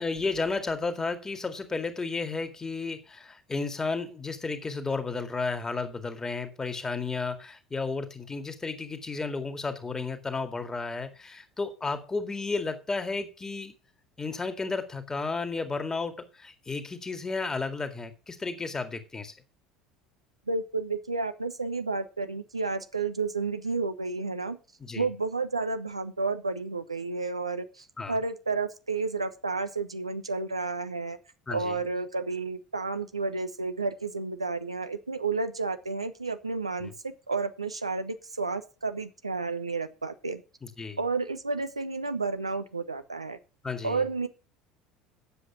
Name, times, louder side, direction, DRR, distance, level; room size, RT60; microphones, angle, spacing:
voice 1, 0.0-13.7 14.2-19.3 24.8-25.1 28.0-28.2 31.5-31.8 36.8-36.9 40.6-41.0 43.6-44.0, left 4 dB, 20° left, 2.0 m, -33 dB
voice 2, 20.5-24.6 24.9-31.2 31.5-40.4 41.0-43.4 43.8-44.3, right 3 dB, 85° right, 0.9 m, -31 dB
10.0 x 7.8 x 5.9 m
figure-of-eight pair, 65°, 3 cm